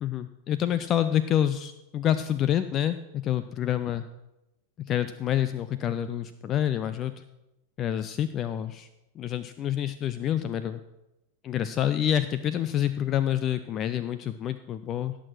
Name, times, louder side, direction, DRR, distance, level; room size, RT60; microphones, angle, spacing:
voice 1, 0.0-4.0 4.9-7.1 7.8-8.9 9.2-10.8 11.4-15.1, left 10 dB, 30° left, 12 dB, 0.5 m, -27 dB
17.0 x 6.1 x 6.2 m, 0.94 s
figure-of-eight pair, 90°, 0 cm